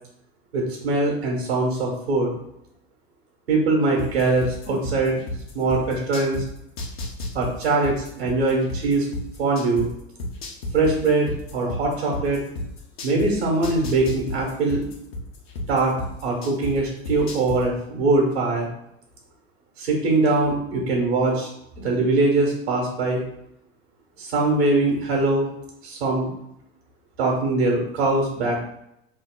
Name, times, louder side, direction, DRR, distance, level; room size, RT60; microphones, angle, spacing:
voice 1, 0.5-2.3 3.5-5.2 5.5-6.4 7.3-9.1 9.4-9.9 10.7-12.4 13.0-14.9 15.7-16.0 16.2-18.7 19.8-21.5 21.8-23.2 24.2-25.5 25.8-26.3 27.2-28.6, right 3 dB, 85° right, -1 dB, 1.0 m, -22 dB
sound 1, 4.0-6.4 6.8-9.9 10.2-13.3 13.6-16.7 17.0-17.6, left 1 dB, 75° left, 0.8 m, -31 dB
2.9 x 2.0 x 3.8 m, 0.79 s
hypercardioid pair, 85°, 31 cm